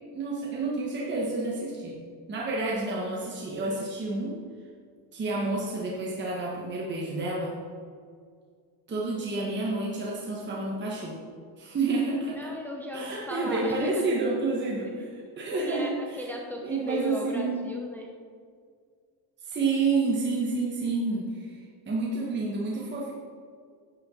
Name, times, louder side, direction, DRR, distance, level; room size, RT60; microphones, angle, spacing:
voice 1, 0.1-2.0 2.3-4.4 5.1-7.6 8.9-11.2 11.6-12.5 12.9-16.3 16.6-17.7 19.4-21.6 21.9-23.1, right 3 dB, 25° right, -4 dB, 1.3 m, -29 dB
voice 2, 12.4-13.9 15.6-15.9 16.2-18.1, left 1 dB, 5° left, 0 dB, 0.7 m, -36 dB
9.6 x 8.6 x 4.3 m, 2.1 s
cardioid pair, 165°, 47 cm